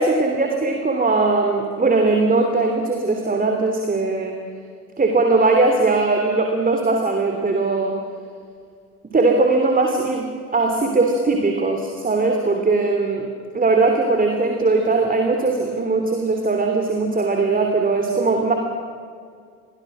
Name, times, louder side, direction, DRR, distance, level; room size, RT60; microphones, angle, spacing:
voice 1, 0.0-4.4 5.0-8.0 9.1-13.3 13.5-18.5, right 3 dB, 20° right, 3 dB, 3.1 m, -19 dB
29.5 x 23.0 x 6.4 m, 2.1 s
figure-of-eight pair, 60°, 42 cm